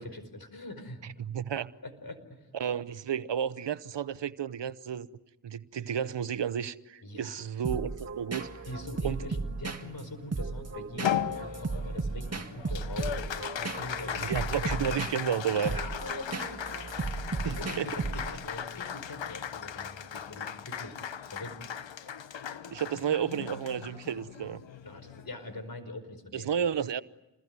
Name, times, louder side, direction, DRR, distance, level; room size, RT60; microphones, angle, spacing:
voice 1, 0.0-1.0 1.8-2.5 7.0-7.4 8.7-15.0 15.7-16.6 17.4-21.0 21.3-21.5 24.8-26.5, left 1 dB, 50° left, 5.2 m, -43 dB
voice 2, 1.2-1.7 2.5-5.1 5.4-8.5 9.0-9.2 14.2-15.7 17.4-17.9 22.7-24.6 26.3-27.0, right 8 dB, 70° right, 0.9 m, -32 dB
sound 1, 7.6-18.5, right 3 dB, 35° right, 2.0 m, -36 dB
Applause, 11.0-25.7, left 9 dB, 85° left, 1.2 m, -37 dB
28.5 x 21.0 x 9.6 m
cardioid pair, 40°, 44 cm